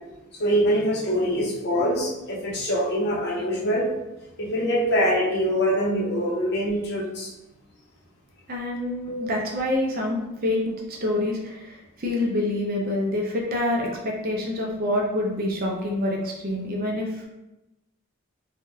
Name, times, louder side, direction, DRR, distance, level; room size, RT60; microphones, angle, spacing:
voice 1, 0.4-3.9 4.4-7.3 9.1-9.3, equal, 55° left, -4 dB, 0.8 m, -24 dB
voice 2, 8.5-17.1, left 1 dB, 45° right, -1 dB, 0.6 m, -27 dB
3.5 x 2.3 x 2.7 m, 0.96 s
head